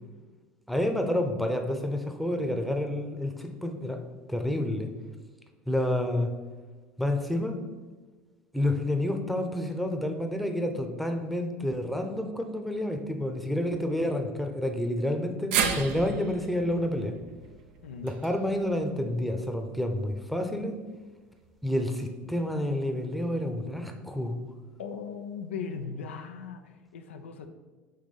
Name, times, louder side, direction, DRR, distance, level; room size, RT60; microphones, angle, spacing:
voice 1, 0.7-4.0 4.3-4.9 5.7-6.3 7.0-7.6 8.5-17.1 18.0-20.8 21.6-24.4, left 1 dB, ahead, 5 dB, 0.8 m, -29 dB
sound 1, 15.5-19.8 20.1-20.2 21.4-21.5, right 7 dB, 70° right, 0.6 m, -34 dB
voice 2, 24.8-27.5, left 6 dB, 85° left, 6 dB, 0.5 m, -38 dB
5.6 x 3.5 x 5.1 m, 1.4 s
hypercardioid pair, 75°, 6 cm